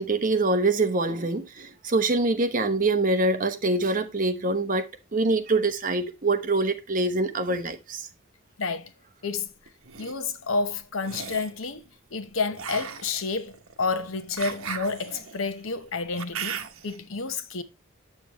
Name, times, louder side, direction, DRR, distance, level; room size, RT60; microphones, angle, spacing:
voice 1, 0.0-4.9 5.1-8.1, right 2 dB, 40° right, 0.9 m, -24 dB
voice 2, 8.6-8.9 9.2-9.5 10.0-11.8 12.1-17.6, left 4 dB, 70° left, 0.9 m, -30 dB
sound 1, 9.7-10.1 11.0-11.6 12.5-17.0, right 7 dB, 85° right, 1.0 m, -37 dB
8.4 x 7.0 x 2.9 m
head